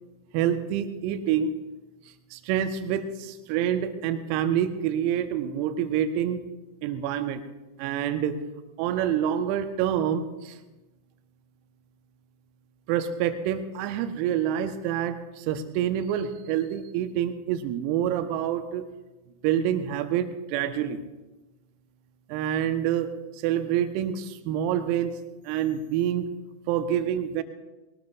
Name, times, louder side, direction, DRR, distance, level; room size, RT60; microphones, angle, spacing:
voice 1, 0.3-1.5 2.3-6.4 6.8-7.4 7.8-8.4 8.8-10.6 12.9-18.8 19.4-21.0 22.3-23.1 23.4-25.1 25.4-26.3 26.7-27.4, right 10 dB, 45° right, 9 dB, 1.2 m, -27 dB
21.0 x 19.0 x 2.7 m, 1.1 s
figure-of-eight pair, 90°, 0 cm